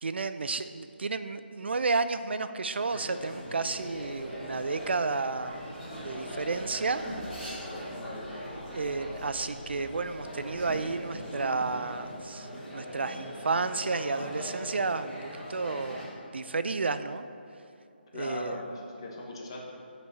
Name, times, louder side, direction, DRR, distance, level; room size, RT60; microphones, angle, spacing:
voice 1, 0.0-5.5 6.0-7.0 8.7-16.0 16.3-17.3 18.1-18.6, right 3 dB, 70° right, 11 dB, 0.4 m, -31 dB
sound 1, 2.9-16.0, equal, 5° right, 1.4 m, -40 dB
sound 2, 3.2-12.2, left 1 dB, 70° left, 1.3 m, -52 dB
voice 2, 7.9-8.3 18.1-19.6, left 2 dB, 25° left, -1 dB, 1.0 m, -39 dB
7.6 x 6.0 x 5.6 m, 2.7 s
hypercardioid pair, 175°, 6 cm